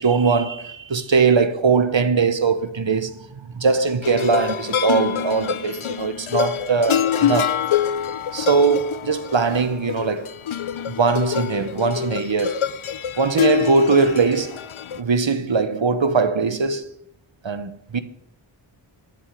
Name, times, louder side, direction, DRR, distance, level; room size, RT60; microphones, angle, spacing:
voice 1, 0.0-7.6 8.3-10.3 10.9-12.6 13.2-14.6 15.0-16.9 17.4-18.0, right 4 dB, 65° right, 1.1 m, -21 dB
sound 1, 4.0-15.0, left 9 dB, 75° left, 0.6 m, -25 dB
13.0 x 6.3 x 9.9 m
wide cardioid pair, 45°, 49 cm